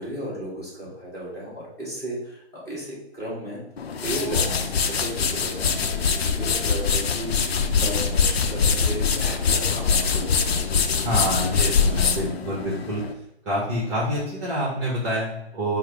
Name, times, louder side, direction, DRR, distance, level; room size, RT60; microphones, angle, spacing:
voice 1, 0.0-3.6 4.0-10.9, right 1 dB, 10° left, -7 dB, 1.3 m, -35 dB
sound 1, 3.8-13.1, left 5 dB, 65° left, 0.5 m, -23 dB
voice 2, 11.0-13.0 13.4-15.8, equal, 20° right, -5 dB, 0.8 m, -27 dB
4.8 x 2.0 x 4.6 m, 0.84 s
figure-of-eight pair, 140°, 33 cm